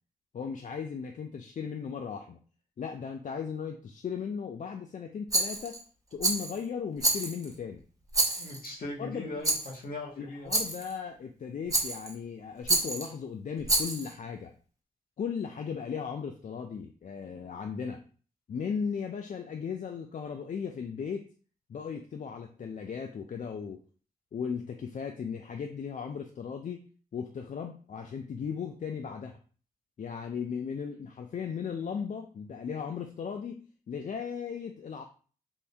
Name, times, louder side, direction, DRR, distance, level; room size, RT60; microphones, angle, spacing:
voice 1, 0.3-2.4 2.8-5.8 6.1-7.8 9.0-9.3 10.2-14.5 15.2-18.0 18.5-21.3 21.7-23.8 24.3-26.8 27.1-29.4 30.0-33.6 33.9-35.0, left 6 dB, 55° left, 5 dB, 0.4 m, -36 dB
Rattle, 5.3-5.8 6.2-6.6 7.0-7.5 8.1-8.7 9.4-9.8 10.5-10.9 11.7-12.1 12.7-13.1 13.6-14.1, right 2 dB, 20° right, 1.1 m, -28 dB
voice 2, 8.4-10.5, left 2 dB, 75° left, -3 dB, 1.5 m, -39 dB
3.6 x 2.6 x 3.4 m, 0.41 s
cardioid pair, 60°, 15 cm